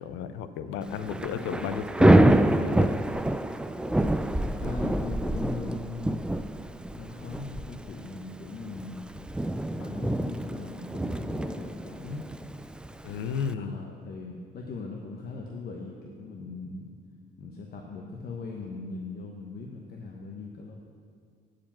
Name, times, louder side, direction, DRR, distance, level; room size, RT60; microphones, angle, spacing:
voice 1, 0.0-3.0 9.8-9.9 13.0-13.9, left 7 dB, 90° left, 11 dB, 0.5 m, -33 dB
voice 2, 0.6-1.5 4.5-6.2 6.9-9.1 9.7-12.3 13.6-16.9 17.4-20.7, left 3 dB, 55° left, 0 dB, 0.9 m, -39 dB
Thunder / Rain, 0.9-13.5, right 1 dB, 5° right, 0.3 m, -26 dB
8.5 x 5.0 x 7.3 m, 2.1 s
supercardioid pair, 80°, 19 cm